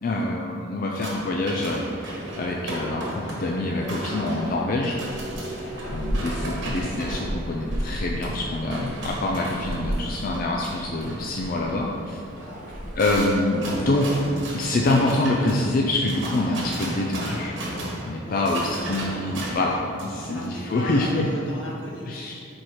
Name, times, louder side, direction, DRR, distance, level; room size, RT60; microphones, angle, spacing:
voice 1, 0.0-5.0 5.9-12.2 13.0-14.2 14.5-17.6 18.0-21.3 22.1-22.5, left 2 dB, 50° left, -1 dB, 0.4 m, -25 dB
sound 1, 0.9-20.5, right 1 dB, 70° right, 1.2 m, -36 dB
sound 2, 2.0-14.4, equal, 45° right, 0.7 m, -35 dB
voice 2, 5.6-6.1 12.4-12.8 18.2-19.5 20.2-22.1, left 1 dB, 80° left, -4 dB, 1.3 m, -40 dB
4.6 x 4.3 x 4.8 m, 2.7 s
head